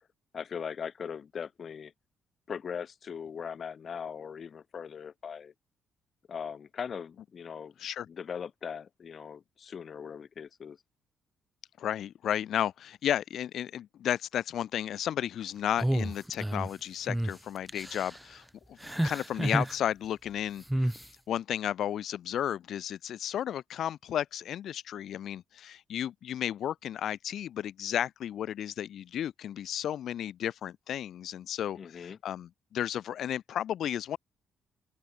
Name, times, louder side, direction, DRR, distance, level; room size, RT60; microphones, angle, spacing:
voice 1, 0.3-1.9 2.5-5.5 6.3-7.7 8.0-10.8 31.7-32.2, left 7 dB, 50° left, 2.5 m, -40 dB
voice 2, 11.8-18.4 18.7-20.9 21.3-34.2, left 10 dB, 70° left, 1.2 m, -33 dB
sound 1, 15.8-16.7 17.1-17.3 17.7-18.2 18.8-19.8 20.7-21.0, right 1 dB, 5° right, 0.7 m, -30 dB
open air
cardioid pair, 90°, 0 cm